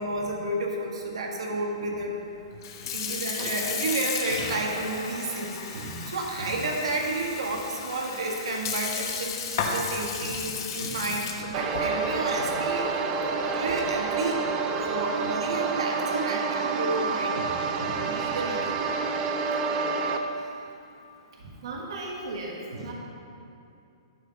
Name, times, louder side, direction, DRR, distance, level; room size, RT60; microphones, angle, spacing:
voice 1, 0.0-2.2 2.9-12.9 13.3-18.8 22.7-22.9, right 2 dB, 90° right, 0 dB, 1.6 m, -31 dB
Sink (filling or washing) / Fill (with liquid), 2.5-14.1, left 6 dB, 40° left, 1.0 m, -34 dB
sound 1, 11.5-20.2, right 4 dB, 20° right, 0.5 m, -28 dB
voice 2, 21.6-22.9, right 2 dB, 60° right, -1 dB, 1.4 m, -36 dB
11.0 x 5.8 x 5.3 m, 2.6 s
hypercardioid pair, 170°, 3 cm